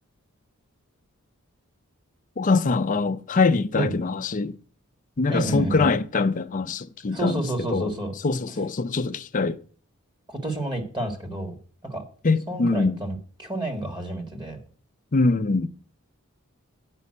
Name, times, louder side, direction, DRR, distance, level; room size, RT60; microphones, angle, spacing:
voice 1, 2.4-4.6 5.2-7.9 8.2-9.6 12.2-12.9 15.1-15.7, left 3 dB, 35° left, 0.5 m, -23 dB
voice 2, 5.3-5.9 7.1-8.1 10.3-11.6 11.8-12.0 12.5-14.6, right 1 dB, 20° right, 1.7 m, -29 dB
8.2 x 5.5 x 7.5 m
head